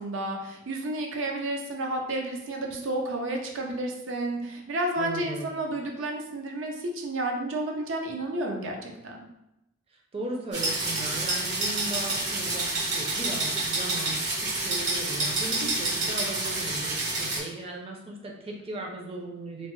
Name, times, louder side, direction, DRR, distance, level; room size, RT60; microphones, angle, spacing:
voice 1, 0.0-9.2, right 1 dB, 90° right, 2 dB, 0.5 m, -31 dB
voice 2, 5.0-5.6 10.1-19.7, right 1 dB, 30° right, -1 dB, 0.4 m, -37 dB
sound 1, 10.5-17.4, right 2 dB, 70° right, 1.5 m, -28 dB
3.1 x 2.0 x 3.0 m, 0.89 s
head